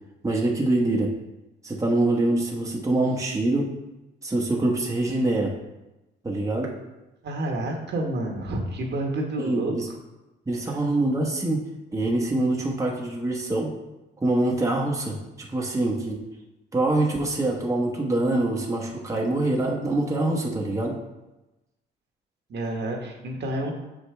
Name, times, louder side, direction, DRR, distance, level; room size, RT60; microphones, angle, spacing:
voice 1, 0.2-1.1 1.6-3.7 4.2-5.5 6.2-6.7 9.4-9.9 10.5-11.6 11.9-13.7 14.2-16.2 16.7-21.0, right 2 dB, 15° right, -2 dB, 1.2 m, -24 dB
voice 2, 7.2-9.7 22.5-23.7, right 1 dB, 60° right, 1 dB, 1.4 m, -29 dB
6.9 x 5.1 x 3.4 m, 1.0 s
cardioid pair, 90°, 20 cm